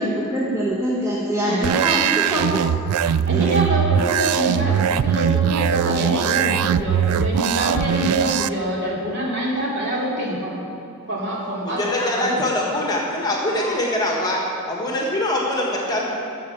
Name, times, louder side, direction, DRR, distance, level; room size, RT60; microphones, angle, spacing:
voice 1, 0.0-2.6 3.3-3.5, equal, 15° right, -7 dB, 1.3 m, -24 dB
sound 1, 1.6-8.5, right 8 dB, 90° right, 0.3 m, -21 dB
voice 2, 3.3-10.6 11.1-12.4, right 1 dB, 55° right, -4 dB, 2.6 m, -25 dB
voice 3, 11.6-16.0, left 1 dB, 20° left, -2 dB, 1.6 m, -23 dB
14.0 x 5.8 x 6.8 m, 2.5 s
head